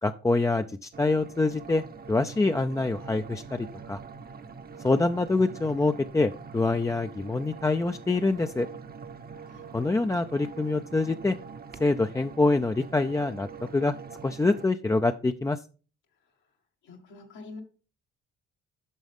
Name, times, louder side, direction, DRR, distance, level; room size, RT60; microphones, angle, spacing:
voice 1, 0.0-4.0 4.8-8.7 9.7-11.4 11.8-13.9 14.2-15.6, left 3 dB, 10° left, 7 dB, 0.3 m, -25 dB
sound 1, 0.9-14.7, right 5 dB, 30° right, 0.7 m, -44 dB
voice 2, 16.8-17.6, left 3 dB, 85° left, 0 dB, 1.9 m, -45 dB
9.4 x 6.2 x 3.5 m, 0.36 s
cardioid pair, 90°, 30 cm